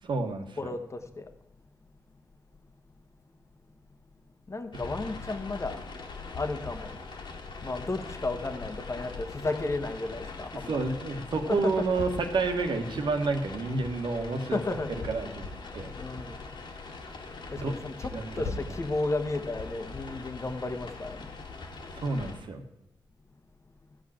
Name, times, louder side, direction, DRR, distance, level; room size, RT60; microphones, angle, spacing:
voice 1, 0.0-0.7 10.7-14.6 15.1-15.9 17.6-17.7 18.1-18.5 22.0-22.6, right 3 dB, 75° right, 6 dB, 1.6 m, -30 dB
voice 2, 0.6-1.3 4.5-5.8 6.3-7.0 7.6-10.8 11.5-11.7 14.5-14.9 16.0-16.4 17.5-21.4, left 2 dB, 35° left, 7 dB, 1.4 m, -33 dB
sound 1, 4.7-22.4, left 4 dB, 70° left, 2.2 m, -41 dB
14.0 x 5.3 x 8.8 m, 0.85 s
cardioid pair, 60°, 8 cm